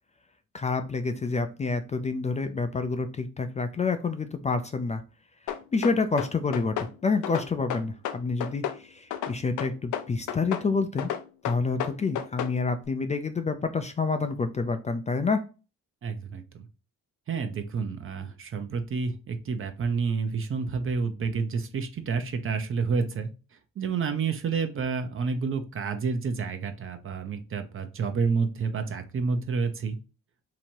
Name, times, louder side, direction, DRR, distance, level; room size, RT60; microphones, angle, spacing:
voice 1, 0.5-5.0 5.7-6.8 7.0-11.1 11.5-15.4, left 4 dB, 25° left, 7 dB, 0.4 m, -28 dB
sound 1, 5.5-6.9 7.2-8.8 9.1-10.7 11.0-12.6, left 9 dB, 80° left, 0.6 m, -32 dB
voice 2, 16.0-16.7 17.3-23.3 23.8-30.0, right 5 dB, 45° right, 7 dB, 0.7 m, -29 dB
3.0 x 2.7 x 4.4 m, 0.32 s
cardioid pair, 90°, 30 cm